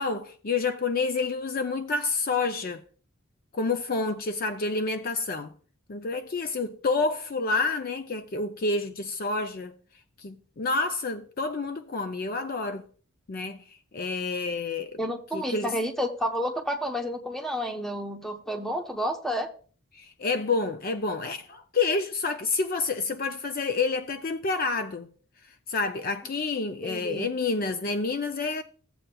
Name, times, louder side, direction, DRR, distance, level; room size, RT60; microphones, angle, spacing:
voice 1, 0.0-2.8 3.5-5.5 5.9-9.7 10.2-12.8 13.3-13.6 13.9-15.0 15.3-15.7 19.9-25.1 25.7-28.6, left 3 dB, 40° left, 0.5 m, -28 dB
voice 2, 15.0-19.5 26.8-27.3, equal, ahead, 0.8 m, -30 dB
15.0 x 7.7 x 2.3 m
head